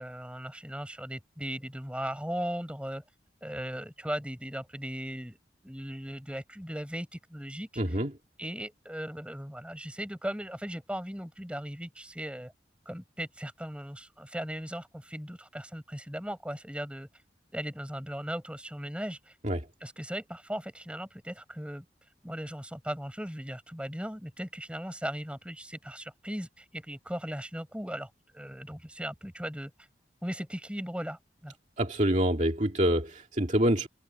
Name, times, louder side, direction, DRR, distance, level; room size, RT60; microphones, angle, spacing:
voice 1, 0.0-3.0 3.4-5.4 5.6-7.8 8.4-12.5 12.9-17.1 17.5-19.3 19.8-21.8 22.2-29.7 30.2-31.5, equal, 5° right, 6.2 m, -38 dB
voice 2, 7.8-8.1 19.4-19.7 31.8-33.9, right 1 dB, 40° right, 2.2 m, -26 dB
head